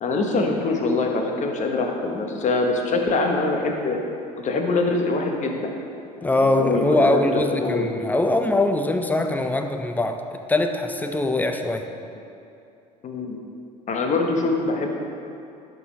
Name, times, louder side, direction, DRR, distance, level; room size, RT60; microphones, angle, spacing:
voice 1, 0.0-4.0 4.4-5.7 6.2-7.9 13.0-13.4 13.9-14.9, left 3 dB, 35° left, 2 dB, 0.9 m, -24 dB
voice 2, 6.2-10.2 10.5-11.9, left 2 dB, 10° left, 5 dB, 0.5 m, -22 dB
10.5 x 3.9 x 3.0 m, 2.7 s
hypercardioid pair, 65°, 21 cm